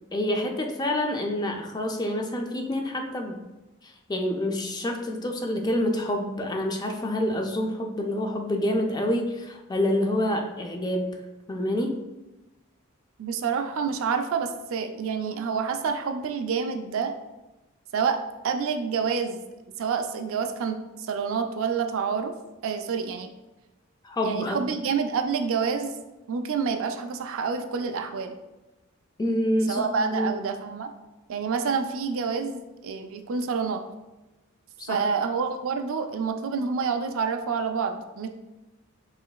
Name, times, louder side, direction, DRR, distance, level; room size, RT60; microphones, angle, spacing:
voice 1, 0.1-3.4 3.8-11.2 11.5-12.0 24.0-24.6 29.2-30.3 34.8-35.0, left 1 dB, 20° left, 3 dB, 0.3 m, -27 dB
voice 2, 13.2-17.1 17.9-18.2 18.4-19.4 19.8-22.3 22.6-23.3 24.2-25.9 26.3-28.4 29.7-30.9 31.3-33.8 34.9-38.3, right 5 dB, 65° right, 6 dB, 0.4 m, -28 dB
4.9 x 3.2 x 2.3 m, 1.0 s
head